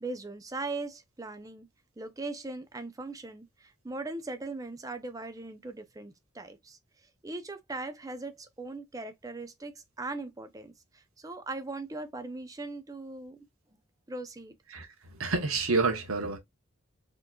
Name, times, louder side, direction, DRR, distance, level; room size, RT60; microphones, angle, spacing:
voice 1, 0.0-1.7 2.0-6.8 7.2-13.5 14.1-14.5, right 2 dB, 15° right, 0.5 m, -39 dB
voice 2, 14.7-16.4, right 3 dB, 85° right, 1.0 m, -29 dB
4.5 x 3.0 x 2.2 m
head